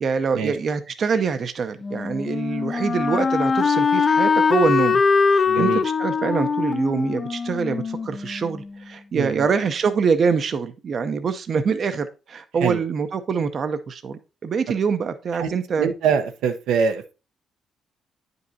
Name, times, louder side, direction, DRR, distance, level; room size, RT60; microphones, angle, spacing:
voice 1, 0.0-15.9, right 5 dB, 50° right, 0.6 m, -25 dB
Wind instrument woodwind instrument, 1.8-8.7, left 5 dB, 35° left, 0.4 m, -22 dB
voice 2, 5.5-5.8 9.1-9.5 12.6-12.8 15.4-15.5 15.8-17.1, right 6 dB, 90° right, 0.7 m, -24 dB
9.1 x 5.3 x 2.7 m
cardioid pair, 90°, 0 cm